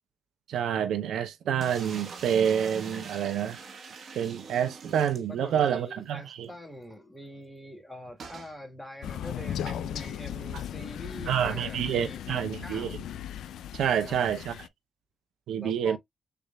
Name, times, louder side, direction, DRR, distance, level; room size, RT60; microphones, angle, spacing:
voice 1, 0.5-3.6 4.2-6.5 11.3-12.9 13.7-14.5 15.5-16.0, right 9 dB, 80° right, 0.7 m, -28 dB
sound 1, 1.6-5.8 6.1-6.2 6.4-6.5 8.2-8.5, right 4 dB, 60° right, 1.2 m, -43 dB
voice 2, 5.3-13.0 13.9-14.3 15.6-16.0, left 1 dB, ahead, 1.9 m, -44 dB
Crow, 9.0-14.7, left 10 dB, 80° left, 0.4 m, -37 dB
6.8 x 2.5 x 2.3 m
cardioid pair, 75°, 0 cm